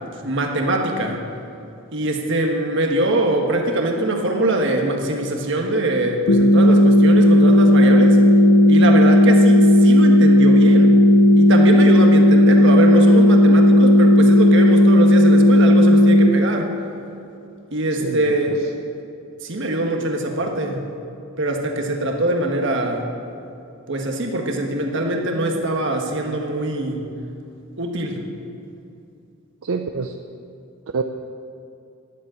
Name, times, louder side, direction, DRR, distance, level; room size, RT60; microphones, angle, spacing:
voice 1, 0.2-1.2 1.9-8.2 8.7-11.0 11.3-16.7 17.7-18.7 19.4-20.9 21.4-23.1 23.9-27.1 27.8-28.2, right 1 dB, 60° right, 2 dB, 1.5 m, -22 dB
sound 1, 6.3-16.3, left 1 dB, 80° left, 0.8 m, -12 dB
voice 2, 18.0-18.3 29.6-30.1 30.9-31.0, right 4 dB, 75° right, 5 dB, 0.5 m, -26 dB
11.5 x 7.6 x 8.9 m, 2.6 s
head